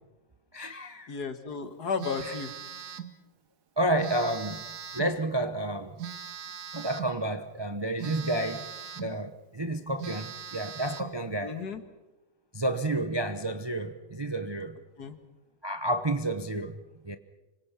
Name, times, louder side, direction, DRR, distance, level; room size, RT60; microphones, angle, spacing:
voice 1, 0.5-1.2 2.2-2.3 3.8-4.6 4.9-6.0 6.7-8.7 9.0-11.6 12.5-14.8 15.6-16.8 17.0-17.2, right 1 dB, 40° right, 0.3 m, -30 dB
voice 2, 1.1-2.5 11.4-11.8 15.0-15.2, left 5 dB, 55° left, 2.1 m, -33 dB
Telephone, 2.0-3.2 4.0-5.2 6.0-7.2 8.0-9.2 9.6-9.7 10.0-11.2, right 8 dB, 55° right, 1.6 m, -40 dB
26.5 x 25.0 x 5.8 m
omnidirectional pair, 2.1 m